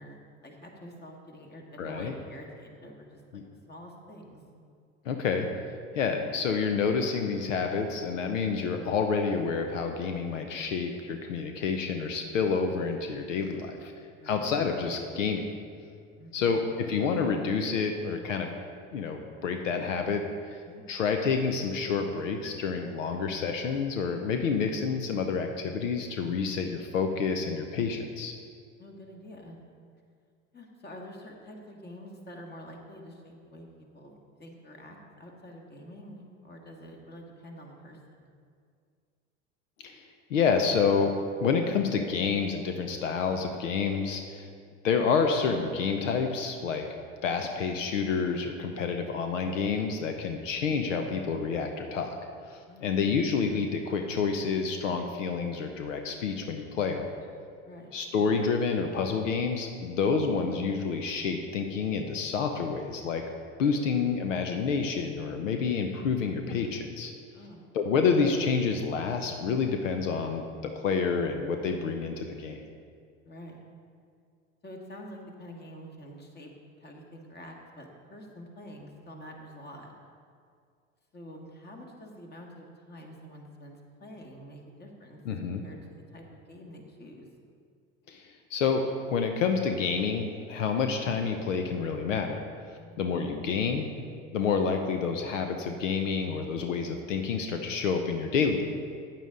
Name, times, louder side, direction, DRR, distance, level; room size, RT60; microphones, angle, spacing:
voice 1, 0.0-3.4 3.7-4.4 14.2-14.5 16.2-16.5 20.6-20.8 28.8-29.6 30.5-38.3 52.7-53.2 57.6-57.9 67.3-67.6 73.2-73.6 74.6-76.5 76.8-79.9 81.1-85.2 85.5-87.3 92.7-93.1, equal, 25° left, 1 dB, 1.8 m, -47 dB
voice 2, 1.8-2.1 3.3-3.4 5.0-5.5 5.9-13.9 14.3-15.5 16.3-18.5 18.9-20.6 20.9-28.3 39.8-40.0 40.3-44.5 44.8-46.8 47.2-52.2 52.5-57.1 57.9-63.2 63.6-67.1 67.7-72.6 85.3-85.6 88.1-92.4 93.0-93.9 94.3-98.6, left 5 dB, 80° left, 5 dB, 0.8 m, -28 dB
9.3 x 9.2 x 3.7 m, 2.2 s
hypercardioid pair, 80°, 37 cm